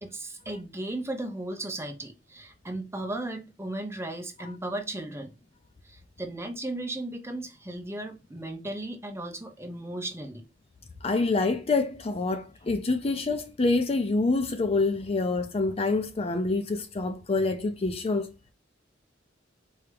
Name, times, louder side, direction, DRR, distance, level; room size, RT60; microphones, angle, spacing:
voice 1, 0.0-5.3 5.8-10.4, right 1 dB, 15° right, 0.8 m, -36 dB
voice 2, 11.0-18.3, left 3 dB, 30° left, 0.5 m, -26 dB
4.7 x 2.9 x 3.3 m
head